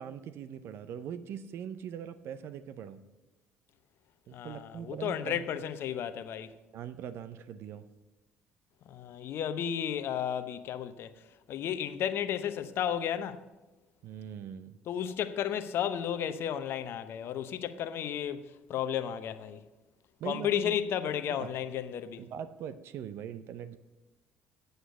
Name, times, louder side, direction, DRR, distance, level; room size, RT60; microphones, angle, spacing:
voice 1, 0.0-3.0 4.3-5.6 6.7-7.9 14.0-14.8 20.2-20.7 21.3-21.5 22.2-23.8, right 8 dB, 60° right, 0.6 m, -41 dB
voice 2, 4.3-6.5 8.9-11.1 11.5-13.4 14.9-19.6 20.2-22.2, left 9 dB, 55° left, 0.8 m, -33 dB
8.1 x 7.9 x 8.1 m
hypercardioid pair, 55°, 5 cm